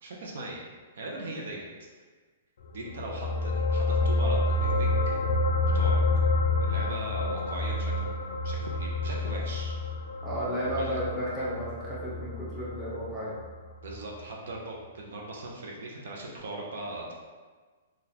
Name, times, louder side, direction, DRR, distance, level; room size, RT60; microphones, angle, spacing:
voice 1, 0.0-0.6 0.9-1.7 2.7-5.2 5.7-6.0 6.6-8.1 8.4-9.7 10.6-10.9 13.8-17.1, right 2 dB, 65° right, -1 dB, 0.6 m, -39 dB
sound 1, 2.8-13.5 13.8-14.0, left 2 dB, 70° left, 0.3 m, -28 dB
voice 2, 10.2-13.3, equal, ahead, -10 dB, 0.9 m, -33 dB
3.8 x 2.3 x 2.8 m, 1.4 s
hypercardioid pair, 165°, 0 cm